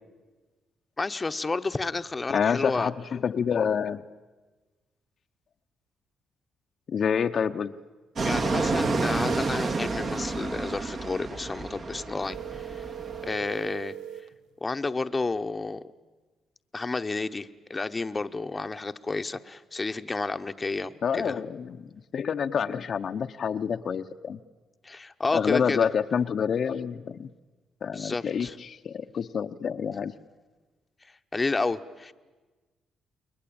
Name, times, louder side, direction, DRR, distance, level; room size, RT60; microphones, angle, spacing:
voice 1, 1.0-2.9 8.2-12.8 13.2-13.9 14.6-15.8 16.7-21.4 24.8-25.9 27.9-28.5 31.3-32.1, left 3 dB, 25° left, 8 dB, 1.0 m, -31 dB
voice 2, 2.3-4.0 6.9-7.7 21.0-24.4 25.3-27.3 27.8-30.1, left 7 dB, 55° left, 7 dB, 0.8 m, -28 dB
Fixed-wing aircraft airplane, 8.2-13.3, right 3 dB, 50° right, 2.1 m, -29 dB
sound 1, 12.2-14.3, right 10 dB, 90° right, 1.2 m, -40 dB
29.5 x 21.5 x 8.8 m, 1.3 s
cardioid pair, 90°, 0 cm